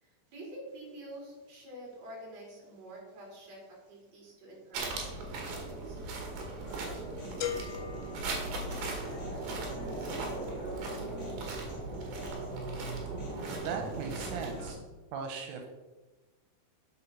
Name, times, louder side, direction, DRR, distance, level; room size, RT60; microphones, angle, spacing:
voice 1, 0.0-6.0, right 1 dB, 35° right, -2 dB, 4.2 m, -48 dB
sound 1, 4.7-14.7, right 2 dB, 60° right, 3.5 m, -38 dB
Human voice, 6.7-14.7, equal, 50° left, 3.5 m, -50 dB
sound 2, 7.4-9.3, left 9 dB, 75° left, 2.7 m, -39 dB
voice 2, 13.6-14.8 15.1-15.7, right 6 dB, 80° right, 3 dB, 3.4 m, -37 dB
9.5 x 7.2 x 6.0 m, 1.2 s
omnidirectional pair, 5.5 m